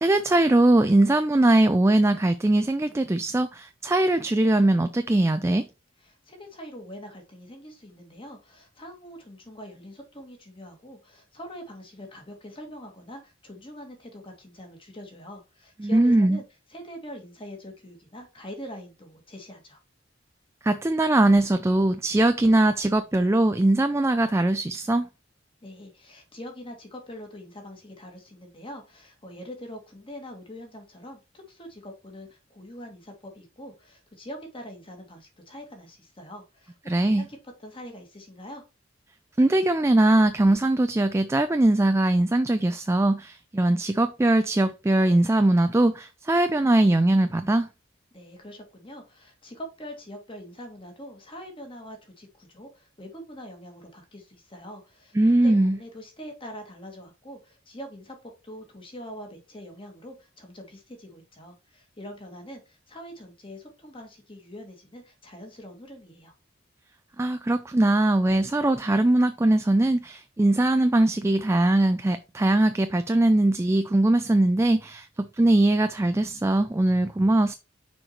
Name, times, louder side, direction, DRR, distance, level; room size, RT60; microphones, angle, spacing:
voice 1, 0.0-5.7 15.8-16.4 20.6-25.1 36.9-37.3 39.4-47.7 55.2-55.8 67.2-77.5, right 1 dB, 15° right, 0.4 m, -21 dB
voice 2, 6.0-16.4 16.7-19.8 25.6-37.4 37.6-38.6 48.1-66.3, equal, 30° left, 1.9 m, -43 dB
6.3 x 4.6 x 4.3 m
head